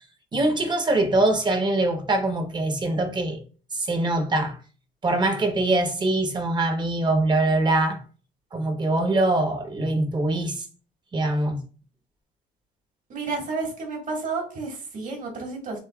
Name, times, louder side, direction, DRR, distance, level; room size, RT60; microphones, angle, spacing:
voice 1, 0.3-3.4 3.7-4.6 5.0-8.0 8.5-10.6 11.1-11.6, right 2 dB, 25° right, 1.0 m, -23 dB
voice 2, 13.1-15.8, right 4 dB, 50° right, 1.9 m, -31 dB
7.3 x 2.5 x 2.3 m
cardioid pair, 110°, 17 cm